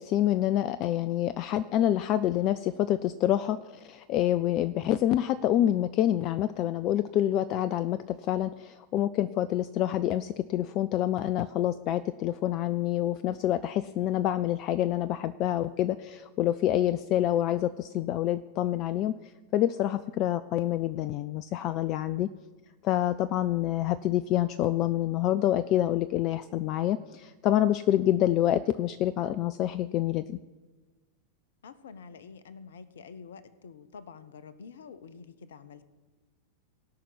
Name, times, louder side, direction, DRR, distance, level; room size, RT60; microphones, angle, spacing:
voice 1, 0.0-19.1 19.5-22.3 22.8-30.4, left 12 dB, 40° left, 14 dB, 0.4 m, -27 dB
voice 2, 31.6-35.8, left 5 dB, 65° left, 15 dB, 0.8 m, -47 dB
17.5 x 5.9 x 8.3 m, 1.3 s
figure-of-eight pair, 90°, 0 cm